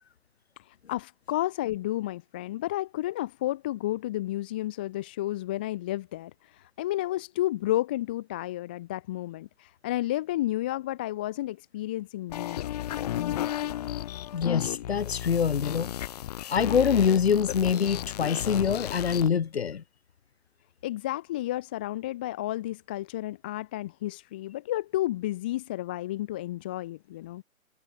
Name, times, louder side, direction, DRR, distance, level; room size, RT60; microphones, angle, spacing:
voice 1, 0.6-12.7 20.8-27.4, left 15 dB, 5° left, 0.8 m, -32 dB
sound 1, 12.3-19.3, left 12 dB, 25° left, 3.5 m, -33 dB
voice 2, 14.3-15.9 16.5-19.8, left 7 dB, 45° left, 2.9 m, -25 dB
figure-of-eight pair, 155°, 43 cm